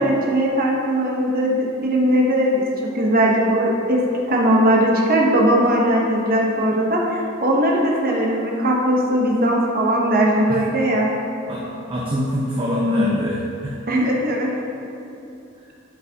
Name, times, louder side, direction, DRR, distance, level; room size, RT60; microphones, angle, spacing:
voice 1, 0.0-4.0 4.3-11.1 13.9-14.5, right 1 dB, 45° right, -2 dB, 1.0 m, -19 dB
voice 2, 11.5-13.8, left 1 dB, 25° right, -5 dB, 0.7 m, -23 dB
10.5 x 4.7 x 2.9 m, 2.7 s
head